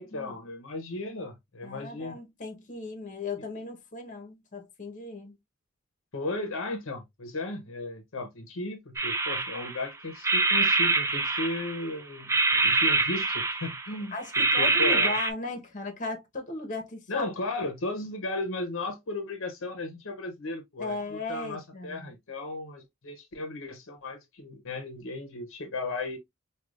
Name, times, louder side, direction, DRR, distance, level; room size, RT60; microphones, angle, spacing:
voice 1, 0.0-2.2 6.1-14.1 14.6-15.2 17.1-26.2, left 2 dB, 65° left, 0.8 m, -35 dB
voice 2, 1.6-5.3 14.1-17.3 20.8-22.1, left 2 dB, 40° left, 1.0 m, -36 dB
sound 1, 9.0-9.8 10.2-11.9 12.3-13.9 14.3-15.3, right 3 dB, 15° right, 0.4 m, -25 dB
4.7 x 2.3 x 2.4 m
head